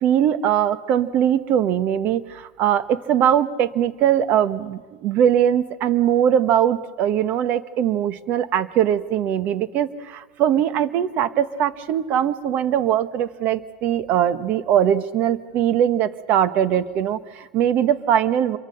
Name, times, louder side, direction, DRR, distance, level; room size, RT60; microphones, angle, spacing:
voice 1, 0.0-18.6, right 10 dB, 50° right, 13 dB, 1.3 m, -21 dB
28.0 x 23.0 x 6.5 m, 1.3 s
hypercardioid pair, 100°, 4 cm